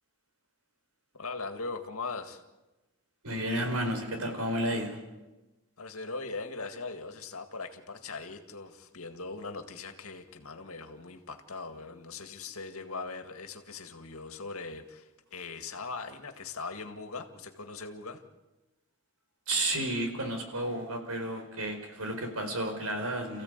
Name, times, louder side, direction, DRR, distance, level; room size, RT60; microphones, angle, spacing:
voice 1, 1.1-2.4 5.8-18.2, left 4 dB, 75° left, 7 dB, 2.0 m, -40 dB
voice 2, 3.2-5.0 19.5-23.4, right 1 dB, 85° right, 5 dB, 4.8 m, -32 dB
28.5 x 15.5 x 8.2 m, 1.1 s
head